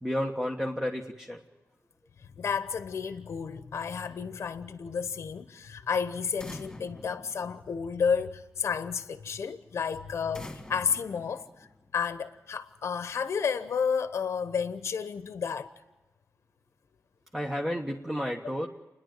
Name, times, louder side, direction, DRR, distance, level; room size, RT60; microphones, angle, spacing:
voice 1, 0.0-1.4 17.3-18.7, equal, 5° right, 1.3 m, -31 dB
voice 2, 2.4-11.5 11.9-15.7, left 6 dB, 60° left, 0.9 m, -31 dB
sound 1, 6.4-8.2 10.3-12.1, left 1 dB, 15° left, 2.4 m, -46 dB
29.0 x 10.5 x 9.1 m
wide cardioid pair, 110°, 5 cm